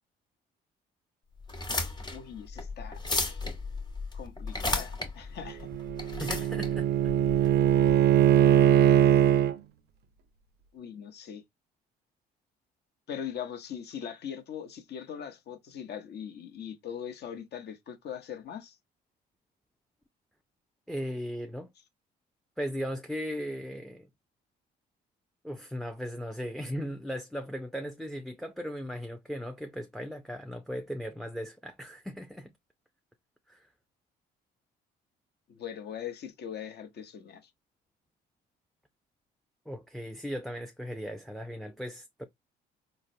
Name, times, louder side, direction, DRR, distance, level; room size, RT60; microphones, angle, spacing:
sound 1, 1.4-7.9, left 2 dB, 20° left, 1.1 m, -34 dB
voice 1, 2.1-3.0 4.1-5.7 6.0-6.1 10.7-11.4 13.1-18.8 35.5-37.4, left 8 dB, 60° left, 0.9 m, -40 dB
Bowed string instrument, 5.5-9.5, right 11 dB, 55° right, 0.4 m, -22 dB
voice 2, 6.2-7.1 7.4-7.6 20.9-21.7 22.6-24.1 25.4-32.5 33.5-33.7 39.7-42.3, equal, ahead, 0.4 m, -37 dB
3.9 x 2.1 x 2.6 m
supercardioid pair, 65°, 20 cm